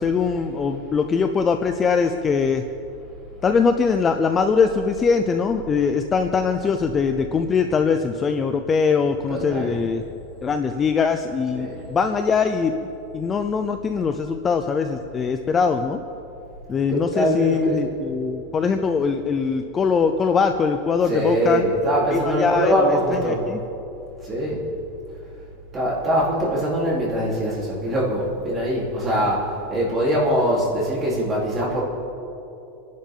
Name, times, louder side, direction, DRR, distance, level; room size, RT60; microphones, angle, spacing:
voice 1, 0.0-2.6 3.4-10.0 10.4-12.7 13.1-16.0 16.7-21.7 22.1-22.7 23.1-23.6, left 5 dB, 15° left, 7 dB, 0.5 m, -22 dB
voice 2, 9.3-9.9 11.5-11.8 16.9-17.8 21.0-23.4 24.2-24.6 25.7-31.8, equal, 20° right, -6 dB, 3.6 m, -23 dB
26.5 x 11.0 x 3.8 m, 2.9 s
supercardioid pair, 175°, 0 cm